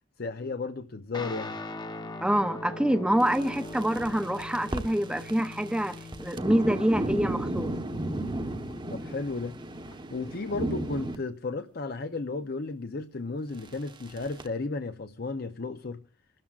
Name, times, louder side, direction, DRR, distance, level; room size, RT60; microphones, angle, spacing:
voice 1, 0.2-1.6 8.7-9.5 10.1-16.0, left 3 dB, 50° left, 0.7 m, -34 dB
Guitar, 1.1-9.9, left 2 dB, 20° left, 1.1 m, -42 dB
voice 2, 2.2-7.7, right 1 dB, 5° right, 0.7 m, -26 dB
sound 1, 3.2-11.2 13.6-14.5, right 1 dB, 25° right, 1.1 m, -34 dB
28.5 x 13.0 x 2.5 m
head